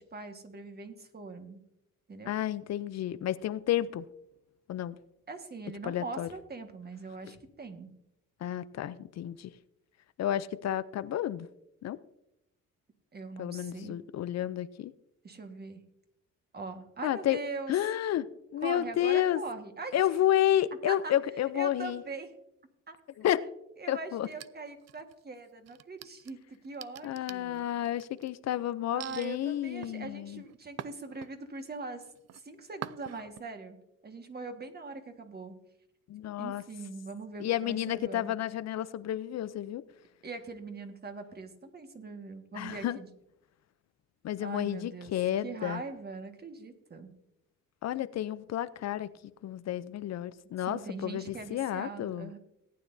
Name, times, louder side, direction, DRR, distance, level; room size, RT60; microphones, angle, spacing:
voice 1, 0.0-1.6 2.1-2.3 5.3-7.9 13.1-13.9 15.2-15.8 16.5-17.7 18.6-19.9 20.9-21.1 21.5-22.3 22.9-23.0 23.4-23.5 23.8-27.7 28.9-32.1 32.3-33.8 34.0-35.5 36.4-38.3 40.2-43.1 44.4-45.1 45.4-47.1 50.7-52.4, right 4 dB, 30° right, 6 dB, 1.6 m, -42 dB
voice 2, 2.3-4.0 4.7-5.0 5.8-6.3 7.2-7.3 8.4-9.5 10.2-11.5 11.8-12.0 13.4-14.9 17.0-17.4 17.7-18.3 18.5-19.4 19.9-22.0 23.2-23.5 23.9-24.3 27.0-30.4 36.1-36.6 37.4-39.8 42.6-43.0 44.2-45.8 47.8-49.1 49.4-52.3, left 12 dB, 60° left, 14 dB, 0.5 m, -31 dB
sound 1, 24.2-25.2 25.7-28.3 29.0-29.3 29.8-31.6 32.0-32.4 32.8-33.4, right 12 dB, 60° right, 0.5 m, -45 dB
18.0 x 9.4 x 2.7 m, 0.84 s
cardioid pair, 90°, 30 cm